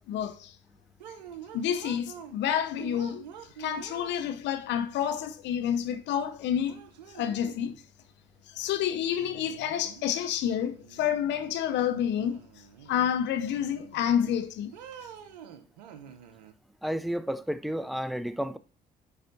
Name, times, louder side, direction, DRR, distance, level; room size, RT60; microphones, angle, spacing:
voice 1, 0.1-0.5 1.5-3.2 3.6-6.8 7.1-7.8 8.5-12.4 12.9-14.7, left 9 dB, 60° left, 0.7 m, -29 dB
sound 1, 1.0-2.4 2.8-4.7 6.1-6.2 6.6-7.8 9.1-10.1 10.4-11.7 12.2-13.0 13.4-14.3 14.7-16.5, right 8 dB, 80° right, 0.6 m, -46 dB
voice 2, 16.8-18.6, equal, ahead, 0.5 m, -31 dB
10.0 x 4.1 x 2.7 m
figure-of-eight pair, 45°, 21 cm